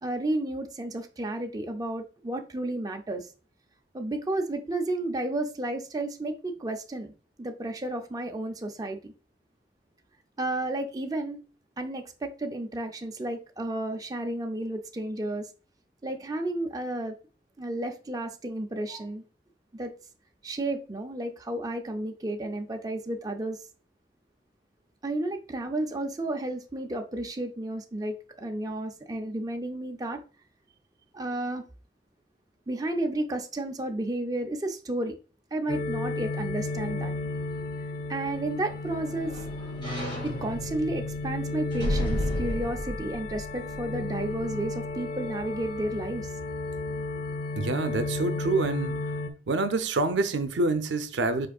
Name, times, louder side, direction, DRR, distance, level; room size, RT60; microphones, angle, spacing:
voice 1, 0.0-3.3 3.9-7.1 7.4-9.1 10.4-11.4 11.8-15.5 16.0-17.1 17.6-19.2 19.7-19.9 20.4-23.6 25.0-30.2 31.1-31.6 32.7-35.2 35.5-37.1 38.1-39.3 40.2-46.3, right 1 dB, 20° right, 0.5 m, -32 dB
sound 1, 35.7-49.3, left 2 dB, 55° left, 0.6 m, -34 dB
sound 2, 38.1-44.4 44.9-45.0, equal, 25° left, 2.4 m, -34 dB
voice 2, 47.6-49.0 49.5-51.5, right 3 dB, 85° right, 0.5 m, -27 dB
5.0 x 4.4 x 2.3 m
head